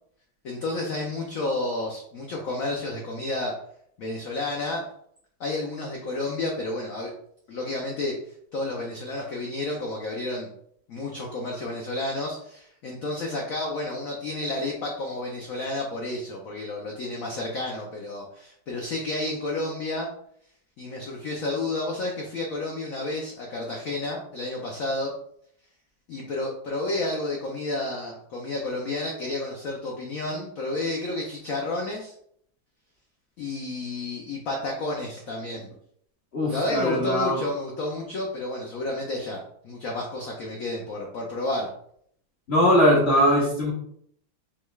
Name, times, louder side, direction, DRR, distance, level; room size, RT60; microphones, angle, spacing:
voice 1, 0.4-3.6 4.0-4.9 5.4-7.1 7.5-8.2 8.5-10.5 10.9-20.1 20.8-25.1 26.1-32.1 33.4-35.7 36.5-41.7, left 2 dB, 80° left, 0 dB, 0.7 m, -31 dB
voice 2, 36.3-37.4 42.5-43.7, equal, 45° left, -5 dB, 0.8 m, -20 dB
5.2 x 3.2 x 2.3 m, 0.68 s
omnidirectional pair, 2.2 m